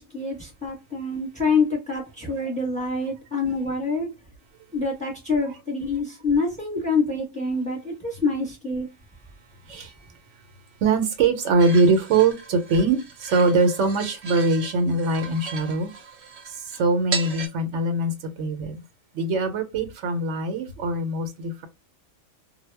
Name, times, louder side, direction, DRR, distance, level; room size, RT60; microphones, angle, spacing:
voice 1, 0.0-4.1 4.7-8.9, left 3 dB, 5° left, 0.8 m, -26 dB
voice 2, 10.8-15.9 16.5-18.8 19.1-21.7, right 3 dB, 75° right, 0.9 m, -22 dB
sound 1, 11.6-17.5, right 5 dB, 50° right, 0.4 m, -36 dB
2.2 x 2.0 x 3.2 m
omnidirectional pair, 1.2 m